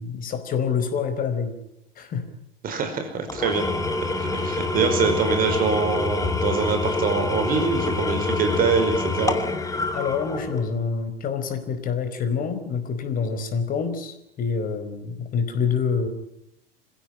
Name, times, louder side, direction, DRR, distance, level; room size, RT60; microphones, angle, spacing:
voice 1, 0.0-1.5 1.9-2.3 9.9-16.1, left 6 dB, 30° left, 9 dB, 4.8 m, -26 dB
voice 2, 2.6-3.7 4.1-9.4, right 5 dB, 30° right, 7 dB, 5.3 m, -24 dB
Engine / Tools, 3.3-10.8, left 3 dB, 10° left, 2.7 m, -26 dB
27.0 x 16.5 x 10.0 m, 0.84 s
figure-of-eight pair, 95°, 29 cm